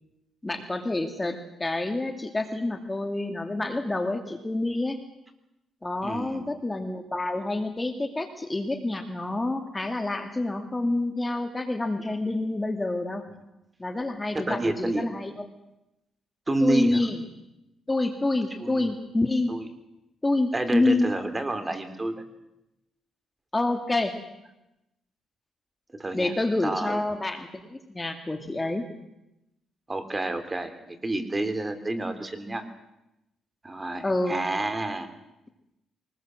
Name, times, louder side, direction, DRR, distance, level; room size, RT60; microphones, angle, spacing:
voice 1, 0.4-5.0 5.8-13.2 13.8-15.3 16.6-17.2 17.9-19.5 20.2-21.1 23.5-24.1 26.1-28.9 34.0-34.4, left 2 dB, 15° left, 6 dB, 2.3 m, -27 dB
voice 2, 6.0-6.4 14.3-15.0 16.5-17.0 18.6-18.9 19.5-19.7 20.5-22.2 25.9-26.3 26.6-27.0 29.9-32.7 33.6-35.1, right 2 dB, 20° right, 9 dB, 3.3 m, -29 dB
23.5 x 20.0 x 7.8 m, 0.90 s
cardioid pair, 90°, 0 cm